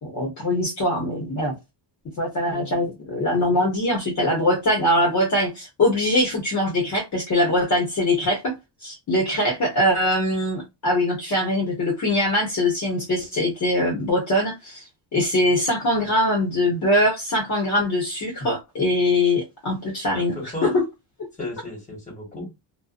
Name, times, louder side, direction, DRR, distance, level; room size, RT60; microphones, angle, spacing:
voice 1, 0.0-1.6 2.2-8.5 8.8-14.8 15.1-20.8, left 1 dB, 40° left, 0.9 m, -22 dB
voice 2, 2.5-2.9 20.1-20.8 21.4-22.5, left 1 dB, 15° left, 1.4 m, -35 dB
2.5 x 2.3 x 2.4 m
cardioid pair, 150°, 44 cm